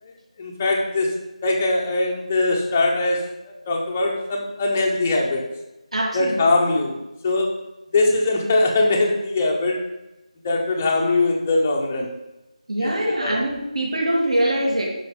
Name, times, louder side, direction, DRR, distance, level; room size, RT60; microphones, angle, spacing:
voice 1, 0.4-5.4 6.1-7.0 7.2-7.6 7.9-9.9 10.4-12.2 12.8-13.4, left 2 dB, 10° left, 0 dB, 0.7 m, -22 dB
voice 2, 5.9-6.4 12.7-14.9, right 1 dB, 60° right, -1 dB, 2.8 m, -23 dB
9.7 x 6.1 x 5.2 m, 0.97 s
figure-of-eight pair, 175°, 4 cm